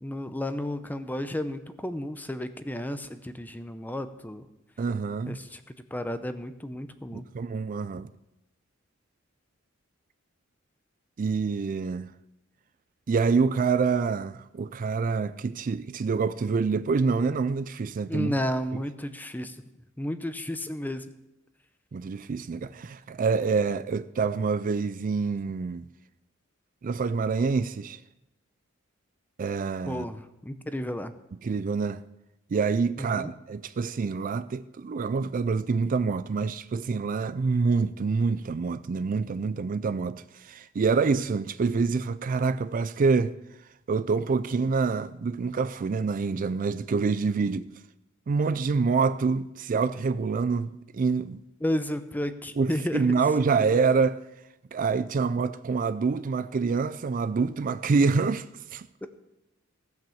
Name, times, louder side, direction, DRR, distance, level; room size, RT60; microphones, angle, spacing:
voice 1, 0.0-4.4 5.3-5.6 5.9-7.3 18.1-19.6 20.0-21.0 29.9-31.1 33.0-33.3 51.6-53.0 53.6-53.7 59.0-59.1, left 1 dB, 10° left, 0.6 m, -32 dB
voice 2, 4.8-5.4 7.1-8.1 11.2-12.1 13.1-18.3 21.9-25.8 26.8-28.0 29.4-30.1 31.4-32.0 32.5-43.4 43.9-47.7 48.3-51.4 52.6-54.2 54.7-58.9, right 4 dB, 40° right, 0.4 m, -26 dB
16.0 x 5.9 x 7.1 m
head